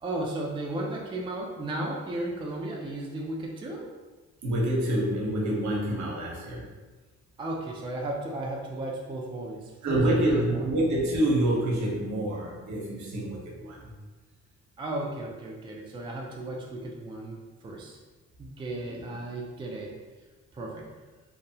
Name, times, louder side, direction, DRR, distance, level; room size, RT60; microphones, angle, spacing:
voice 1, 0.0-3.9 7.4-10.7 14.8-17.4 17.6-18.0 18.4-19.9 20.5-20.8, right 1 dB, 15° right, -1 dB, 0.3 m, -34 dB
voice 2, 4.4-6.6 9.8-13.9 18.8-19.0, right 1 dB, 70° right, -3 dB, 0.8 m, -27 dB
2.7 x 2.0 x 2.7 m, 1.3 s
cardioid pair, 90°, 30 cm